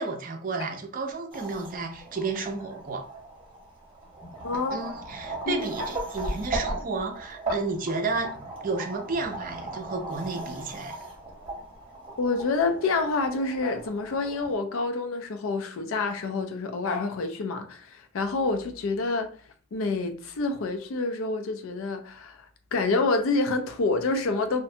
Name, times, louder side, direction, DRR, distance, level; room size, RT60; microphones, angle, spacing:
voice 1, 0.0-3.1 4.7-8.3 8.6-11.0, right 3 dB, 40° right, 0.4 m, -32 dB
sound 1, 1.3-14.5, right 2 dB, 25° right, 0.8 m, -37 dB
voice 2, 4.4-4.8 5.5-5.7 12.2-19.3 19.7-24.6, left 3 dB, 75° left, 0.4 m, -27 dB
2.5 x 2.1 x 2.6 m
head